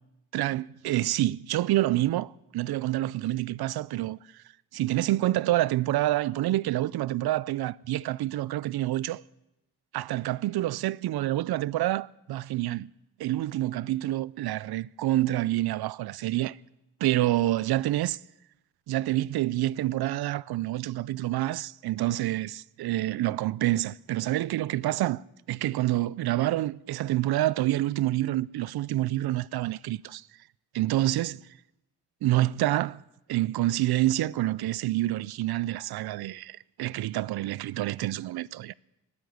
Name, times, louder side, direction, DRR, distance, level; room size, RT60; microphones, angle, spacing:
voice 1, 0.3-4.4 4.7-9.2 9.9-12.9 13.2-16.6 17.0-18.2 18.9-30.3 30.7-31.4 32.2-33.0 33.3-38.7, right 15 dB, 75° right, 0.5 m, -27 dB
19.0 x 8.8 x 8.0 m
cardioid pair, 110°, 39 cm